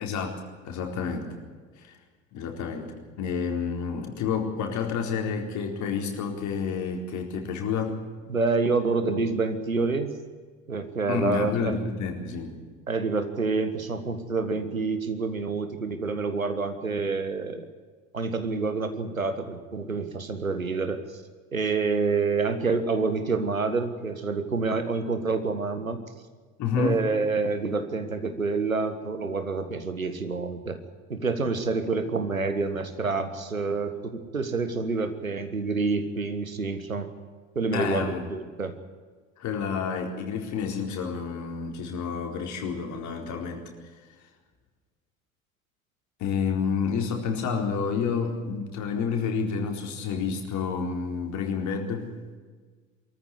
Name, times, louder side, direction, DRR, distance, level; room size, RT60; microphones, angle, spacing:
voice 1, 0.0-1.3 1.8-2.0 2.3-8.0 11.1-12.5 26.6-27.0 37.7-38.3 39.4-43.7 46.2-52.1, left 6 dB, 45° left, 3 dB, 4.3 m, -29 dB
voice 2, 8.3-10.1 10.7-11.8 12.9-17.7 18.1-21.0 21.5-26.0 26.8-30.8 31.1-37.1 37.6-38.8, right 4 dB, 85° right, 9 dB, 1.7 m, -27 dB
23.5 x 14.0 x 9.9 m, 1.5 s
figure-of-eight pair, 65°, 40 cm